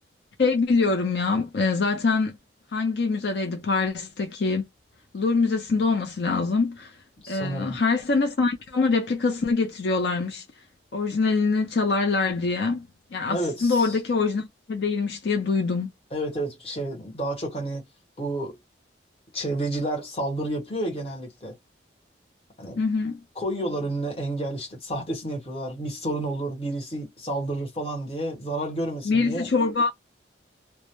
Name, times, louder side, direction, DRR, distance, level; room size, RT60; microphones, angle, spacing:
voice 1, 0.4-2.4 2.7-4.6 5.1-6.9 7.3-10.4 10.9-15.9 22.8-23.2 29.0-29.9, left 4 dB, 65° left, 0.5 m, -24 dB
voice 2, 7.2-7.8 13.3-14.0 16.1-17.9 18.2-18.6 19.3-21.6 22.6-22.8 23.4-29.5, right 1 dB, 30° left, 1.0 m, -30 dB
2.2 x 2.0 x 2.8 m
head